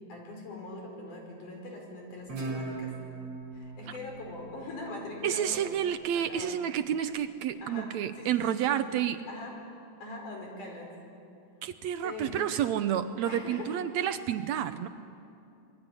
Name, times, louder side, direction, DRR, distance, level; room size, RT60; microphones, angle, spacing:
voice 1, 0.0-2.9 3.5-5.7 6.1-6.6 7.6-8.8 9.2-9.6 10.0-10.9 12.0-12.5 13.3-13.7, left 2 dB, 80° left, 1 dB, 6.8 m, -42 dB
Guitar, 2.3-5.5, right 3 dB, 55° right, 5.6 m, -39 dB
voice 2, 5.2-9.2 11.6-14.9, right 10 dB, 70° right, 10 dB, 1.9 m, -30 dB
27.5 x 21.0 x 9.9 m, 2.6 s
omnidirectional pair, 3.5 m